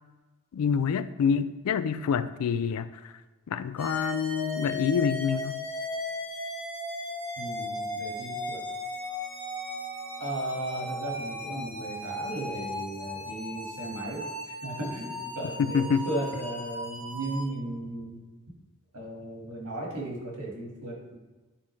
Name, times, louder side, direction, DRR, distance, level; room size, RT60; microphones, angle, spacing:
voice 1, 0.5-3.1 3.5-5.6 15.6-16.1, left 6 dB, 75° left, 14 dB, 0.3 m, -27 dB
sound 1, 3.8-17.5, left 1 dB, 5° left, 1.6 m, -36 dB
voice 2, 7.4-8.6 10.2-18.2 18.9-21.2, right 1 dB, 85° right, -2 dB, 1.7 m, -36 dB
sound 2, 8.4-13.9, right 1 dB, 30° right, 1.1 m, -54 dB
9.7 x 3.5 x 3.2 m, 1.2 s
head